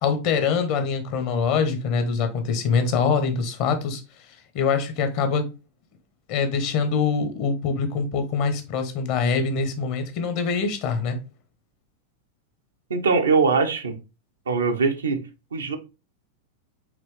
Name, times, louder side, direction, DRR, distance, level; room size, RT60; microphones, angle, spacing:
voice 1, 0.0-4.0 4.5-5.5 6.3-11.2, left 5 dB, 45° left, 1.0 m, -24 dB
voice 2, 12.9-13.9 14.5-15.2 15.5-15.8, right 4 dB, 70° right, 0.7 m, -21 dB
5.1 x 3.1 x 3.2 m
figure-of-eight pair, 90°, 0 cm